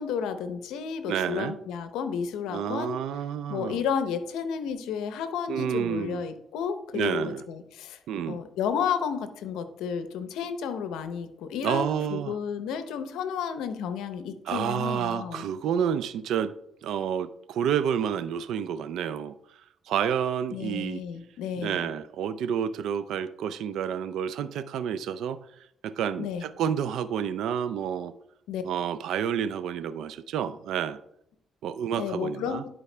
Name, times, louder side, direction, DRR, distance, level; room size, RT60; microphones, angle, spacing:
voice 1, 0.0-3.0 3.5-8.0 8.3-15.4 20.5-21.9 26.2-26.5 28.5-28.6 32.0-32.6, left 7 dB, 90° left, 0.7 m, -32 dB
voice 2, 1.1-1.5 2.5-3.8 5.5-6.2 6.9-7.4 8.1-8.4 11.6-12.3 14.5-16.5 16.8-19.4 19.9-21.0 21.6-25.4 25.8-28.1 28.6-31.0 31.6-32.6, right 8 dB, 80° right, 0.4 m, -29 dB
11.0 x 4.7 x 3.3 m
cardioid pair, 90°, 0 cm